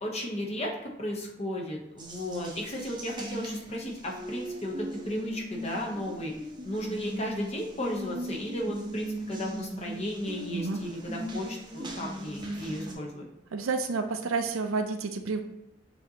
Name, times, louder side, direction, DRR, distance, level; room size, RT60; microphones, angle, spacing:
voice 1, 0.0-6.3 6.6-13.3, equal, 30° left, -1 dB, 0.7 m, -34 dB
Water tap faucet, 2.0-12.9, right 1 dB, 20° right, 0.6 m, -38 dB
voice 2, 13.5-15.4, right 4 dB, 80° right, 7 dB, 0.5 m, -30 dB
6.9 x 2.7 x 2.7 m, 0.85 s
head